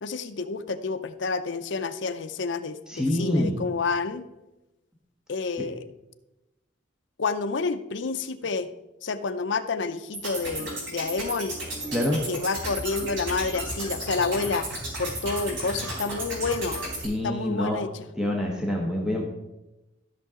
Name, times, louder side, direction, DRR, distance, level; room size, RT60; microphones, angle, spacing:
voice 1, 0.0-4.3 5.3-5.8 7.2-8.7 9.0-11.6 12.3-14.7 15.0-16.8 17.2-18.1, left 4 dB, 65° left, 10 dB, 0.6 m, -29 dB
voice 2, 2.9-3.6 11.9-12.2 17.0-17.8 18.2-19.3, left 1 dB, 5° right, -1 dB, 1.2 m, -26 dB
sound 1, 10.1-17.1, right 1 dB, 75° right, 3.7 m, -34 dB
14.0 x 6.4 x 3.7 m, 1.0 s
head